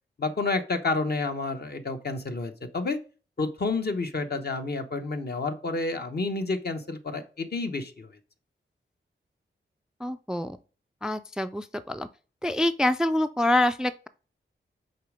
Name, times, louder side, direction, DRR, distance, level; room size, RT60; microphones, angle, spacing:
voice 1, 0.2-3.0 3.4-8.1, left 3 dB, 50° left, 1.0 m, -29 dB
voice 2, 10.0-10.6 11.0-12.1 12.4-14.1, left 1 dB, 5° right, 0.3 m, -26 dB
6.6 x 4.0 x 5.0 m
wide cardioid pair, 70°, 20 cm